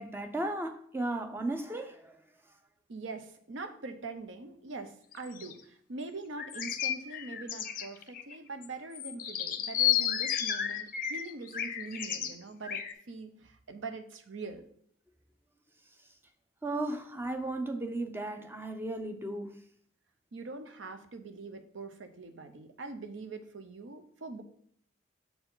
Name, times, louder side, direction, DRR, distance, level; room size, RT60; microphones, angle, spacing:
voice 1, 0.0-2.2 16.6-19.6, right 2 dB, 10° right, 0.5 m, -35 dB
voice 2, 2.9-14.6 20.3-24.4, right 3 dB, 90° right, 0.7 m, -43 dB
sound 1, 5.1-5.5 6.4-8.4 8.6-8.7 8.9-12.3 12.6-12.9, left 10 dB, 45° left, 0.5 m, -32 dB
6.7 x 4.5 x 3.9 m
head